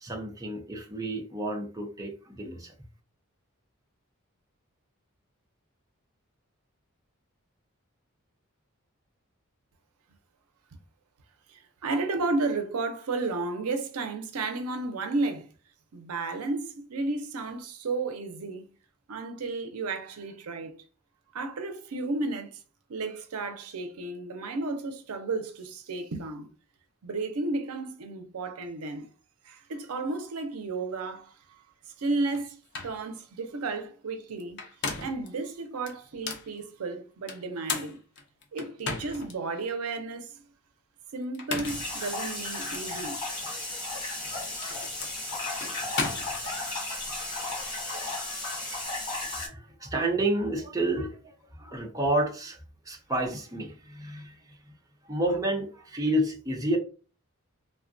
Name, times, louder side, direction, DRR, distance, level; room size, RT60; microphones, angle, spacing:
voice 1, 0.0-2.7 49.1-52.6 52.8-54.3 55.1-56.8, right 1 dB, 15° right, 0.6 m, -30 dB
voice 2, 11.5-15.5 15.9-18.7 19.1-20.7 21.3-22.6 22.9-26.5 27.0-29.1 29.4-31.6 32.0-34.6 35.0-38.0 38.5-40.4 41.1-43.2, right 3 dB, 90° right, 0.5 m, -33 dB
sound 1, 32.3-32.4 32.7-33.0 34.4-35.3 35.9-36.5 37.3-39.3 39.9-40.0 41.2-41.9 42.7-42.9 44.1-46.8, left 4 dB, 50° left, 0.6 m, -35 dB
sound 2, 41.6-49.5, left 2 dB, 20° left, 1.3 m, -34 dB
sound 3, 43.4-48.8, left 3 dB, 70° left, 1.1 m, -47 dB
3.4 x 2.1 x 2.5 m
head